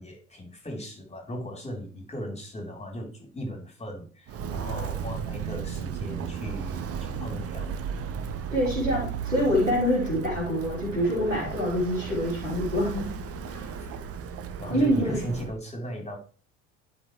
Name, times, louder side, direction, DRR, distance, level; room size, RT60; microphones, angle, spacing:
voice 1, 0.0-7.7 13.8-13.9 14.6-16.2, equal, 15° left, 2 dB, 3.4 m, -37 dB
Walk footsteps, 4.3-15.5, right 6 dB, 40° right, 1.0 m, -35 dB
voice 2, 8.5-13.1 13.5-13.7 14.7-15.2, equal, 90° right, -4 dB, 3.4 m, -26 dB
11.5 x 5.7 x 3.1 m, 0.38 s
figure-of-eight pair, 60°, 37 cm